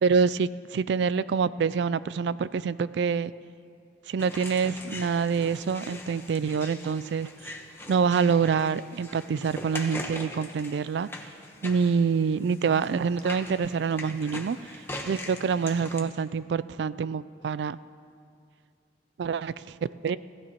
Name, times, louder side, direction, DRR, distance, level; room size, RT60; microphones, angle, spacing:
voice 1, 0.0-3.3 4.1-7.5 7.9-11.1 11.6-14.6 15.0-17.8 19.2-19.7 20.0-20.2, right 6 dB, 65° right, 17 dB, 0.3 m, -26 dB
sound 1, 4.2-16.0, left 1 dB, 15° left, 1.0 m, -41 dB
26.0 x 15.0 x 3.0 m, 2.4 s
head